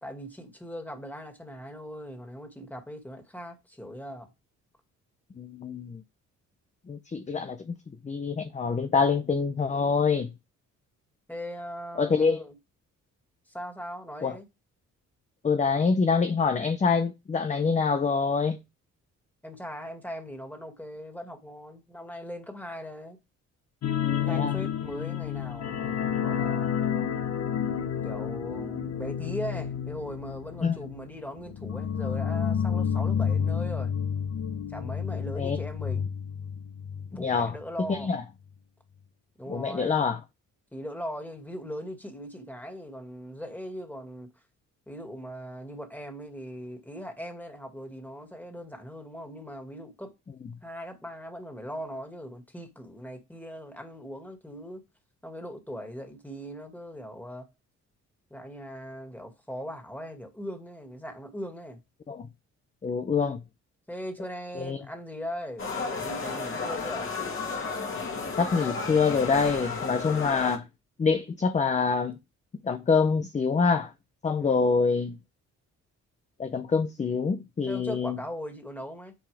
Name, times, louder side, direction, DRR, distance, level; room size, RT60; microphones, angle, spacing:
voice 1, 0.0-4.3 11.3-12.6 13.5-14.5 19.4-23.2 24.2-26.7 28.0-33.9 34.7-36.1 37.1-38.1 39.4-40.1 40.7-44.3 44.9-50.1 50.6-54.8 55.2-57.5 58.3-61.8 63.9-67.1 74.4-74.7 77.7-79.1, equal, 5° left, 2.2 m, -39 dB
voice 2, 5.4-6.0 6.9-7.7 8.0-10.3 12.0-12.4 14.2-14.3 15.4-18.6 24.3-24.5 30.6-30.8 35.4-35.6 37.1-37.5 37.9-38.2 39.5-40.2 62.1-62.3 62.8-63.4 64.6-64.8 68.4-70.6 71.0-72.2 72.6-73.9 74.2-75.2 76.4-78.2, left 5 dB, 25° left, 0.6 m, -25 dB
sound 1, 23.8-37.1 37.4-37.6 37.9-38.0, left 8 dB, 60° left, 1.0 m, -30 dB
sound 2, 65.6-70.6, left 4 dB, 45° left, 2.4 m, -33 dB
9.1 x 4.7 x 3.5 m
cardioid pair, 90°, 30 cm